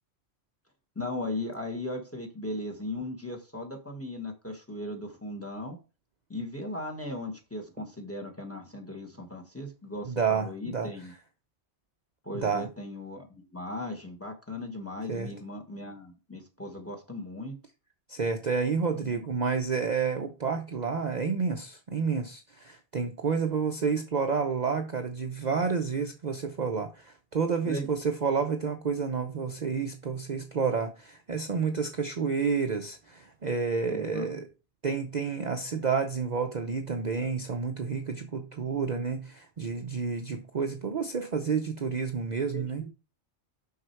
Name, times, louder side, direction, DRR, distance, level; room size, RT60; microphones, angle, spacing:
voice 1, 0.9-5.8 6.3-11.1 12.2-17.5 19.0-19.2 27.7-27.9 33.9-34.3 42.4-42.9, left 1 dB, 10° left, 1.2 m, -37 dB
voice 2, 10.1-10.9 12.3-12.7 15.1-15.3 18.1-34.5 34.8-42.9, right 5 dB, 45° right, 0.7 m, -30 dB
6.2 x 5.7 x 4.5 m
omnidirectional pair, 1.2 m